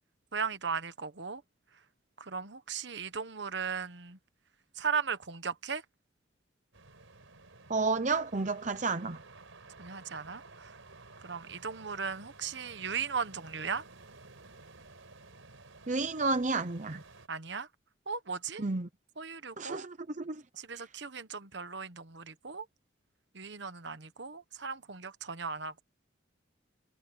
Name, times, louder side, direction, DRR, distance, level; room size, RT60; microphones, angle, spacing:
voice 1, 0.3-1.4 2.2-4.2 4.8-5.8 9.8-10.7 11.2-13.8 17.3-17.7 18.1-18.6 19.2-19.9 20.6-22.6 23.3-25.8, right 5 dB, 60° right, 1.2 m, -37 dB
sound 1, 6.7-17.3, right 3 dB, 85° right, 4.6 m, -54 dB
voice 2, 7.7-9.2 15.9-17.0 18.6-18.9 19.6-20.4, right 3 dB, 40° right, 0.8 m, -31 dB
head